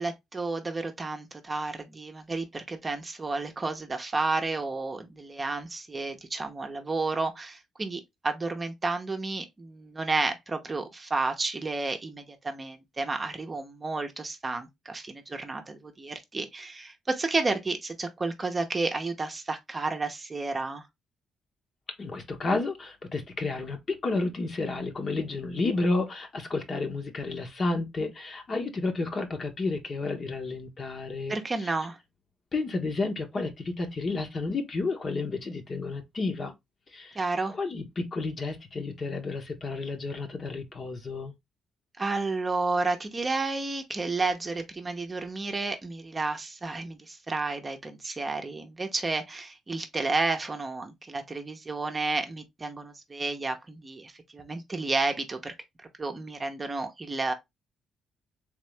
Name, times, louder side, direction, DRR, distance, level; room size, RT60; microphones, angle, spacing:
voice 1, 0.0-20.9 31.3-32.0 37.1-37.6 42.0-55.5 55.8-57.3, right 3 dB, 25° right, 0.8 m, -31 dB
voice 2, 22.0-31.7 32.5-36.5 36.9-37.2 37.5-41.3, left 3 dB, 40° left, 1.1 m, -31 dB
3.6 x 3.2 x 3.2 m
cardioid pair, 90°, 0 cm